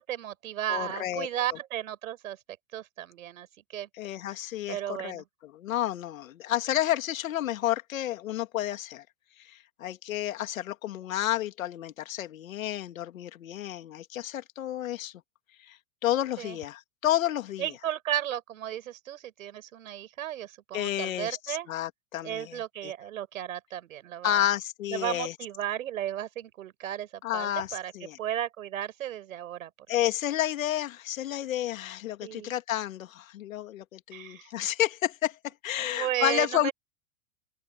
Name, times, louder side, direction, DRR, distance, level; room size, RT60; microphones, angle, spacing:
voice 1, 0.0-2.4 2.7-3.5 3.7-3.9 4.7-5.2 16.4-16.6 17.6-21.7 22.2-24.5 24.9-27.9 28.2-29.7 32.2-32.5 34.1-34.5 35.8-36.7, right 11 dB, 85° right, 5.8 m, -34 dB
voice 2, 0.7-1.3 4.0-9.0 9.4-15.1 15.7-17.8 20.7-22.9 24.2-25.3 27.2-28.2 29.9-36.7, left 12 dB, 90° left, 2.4 m, -31 dB
open air
supercardioid pair, 135°, 39 cm